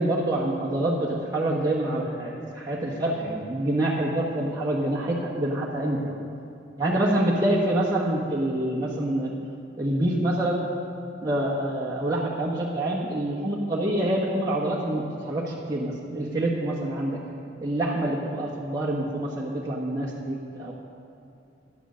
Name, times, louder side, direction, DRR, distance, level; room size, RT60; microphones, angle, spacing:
voice 1, 0.0-6.2 6.8-9.4 9.8-10.6 11.2-17.2 17.6-20.7, right 1 dB, 20° right, -6 dB, 1.4 m, -26 dB
12.0 x 10.0 x 6.3 m, 2.7 s
head